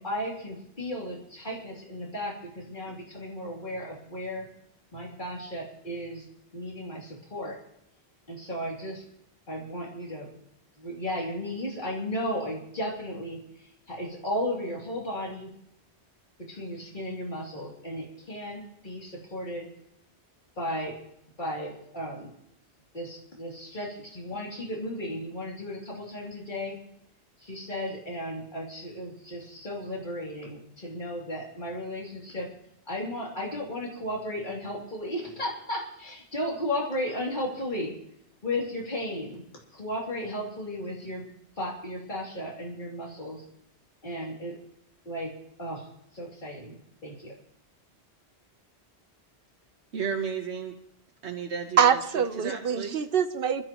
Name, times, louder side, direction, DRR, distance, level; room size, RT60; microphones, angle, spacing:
voice 1, 0.0-4.4 4.9-6.3 6.5-7.5 8.3-9.0 9.5-10.3 10.8-13.4 13.9-15.5 16.5-19.7 20.6-21.0 21.4-22.3 22.9-26.8 27.4-32.5 32.9-37.9 38.4-39.4 39.7-41.3 41.6-43.4 44.0-44.5 45.0-45.3 45.6-45.8 46.1-47.3, left 1 dB, 45° left, -3 dB, 3.0 m, -34 dB
voice 2, 49.9-50.7 51.2-52.0 52.4-53.1, right 6 dB, 80° right, 3 dB, 1.3 m, -33 dB
voice 3, 51.8-53.6, right 7 dB, 60° right, 11 dB, 0.9 m, -24 dB
25.5 x 12.5 x 3.0 m, 0.76 s
omnidirectional pair, 1.1 m